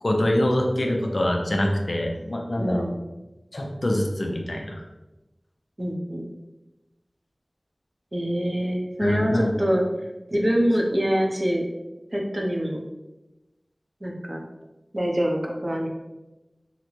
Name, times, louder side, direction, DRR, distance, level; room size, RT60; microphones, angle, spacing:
voice 1, 0.0-2.9 3.5-4.8 9.0-9.5, left 1 dB, 70° left, 1 dB, 0.5 m, -24 dB
voice 2, 2.6-2.9 5.8-6.3 8.1-9.8 10.3-11.6 12.1-12.8 14.0-14.4 14.9-15.9, equal, 35° right, 0 dB, 0.6 m, -25 dB
3.8 x 2.2 x 3.0 m, 1.0 s
wide cardioid pair, 45°, 0 cm